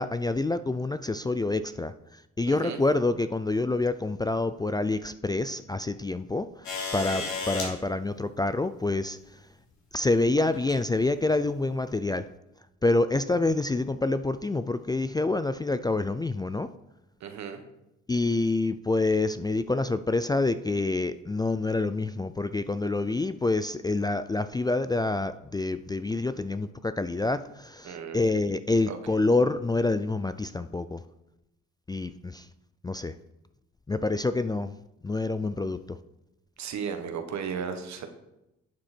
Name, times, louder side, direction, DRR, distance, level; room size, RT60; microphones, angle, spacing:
voice 1, 0.0-9.4 9.9-12.3 12.8-16.7 18.1-31.0 31.9-32.5 32.8-33.1 33.9-34.7 35.0-36.0, left 2 dB, 15° left, 12 dB, 0.4 m, -27 dB
voice 2, 2.5-2.8 7.0-7.3 17.2-17.6 27.8-28.2 28.9-29.0 36.6-38.1, right 7 dB, 65° right, 7 dB, 1.5 m, -35 dB
sound 1, 6.6-7.7 9.1-9.2 10.5-10.8 11.7-11.8, left 4 dB, 70° left, 3.4 m, -33 dB
11.5 x 7.6 x 4.4 m, 0.89 s
cardioid pair, 90°, 30 cm